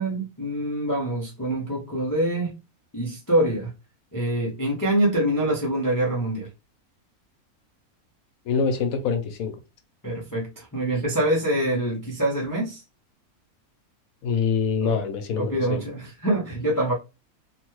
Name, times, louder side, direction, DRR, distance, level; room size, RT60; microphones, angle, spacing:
voice 1, 0.0-2.5 2.9-3.7 4.1-6.5 10.0-12.8 14.8-15.0 15.4-16.9, right 1 dB, 25° left, 0.4 m, -25 dB
voice 2, 8.5-9.6 14.2-15.8, left 5 dB, 75° left, 1.0 m, -25 dB
3.0 x 2.2 x 3.0 m
omnidirectional pair, 1.6 m